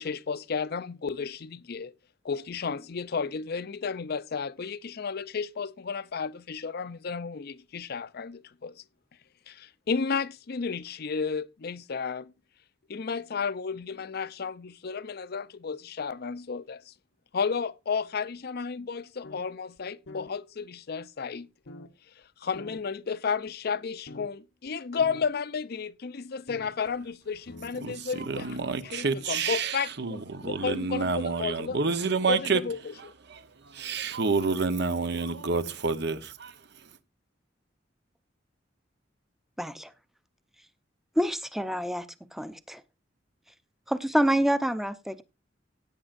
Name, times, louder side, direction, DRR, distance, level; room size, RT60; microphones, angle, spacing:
voice 1, 0.0-1.9 2.2-8.8 9.5-12.3 12.9-16.9 17.3-21.5 22.4-28.6 28.8-31.8 32.3-33.1, left 5 dB, 55° left, 0.6 m, -33 dB
sound 1, 19.2-19.4 19.8-19.9 20.1-20.3 21.7-21.9 22.5-22.8 23.5-23.6 24.1-24.3 24.7-24.8 25.0-25.3 26.5-26.7 27.3-27.8, left 2 dB, 90° left, 0.9 m, -44 dB
voice 2, 27.8-32.6 33.3-36.5, right 4 dB, 65° right, 0.9 m, -29 dB
voice 3, 39.6-39.9 41.2-42.1 42.3-42.8 43.9-45.2, equal, ahead, 0.7 m, -27 dB
16.0 x 8.9 x 2.5 m
head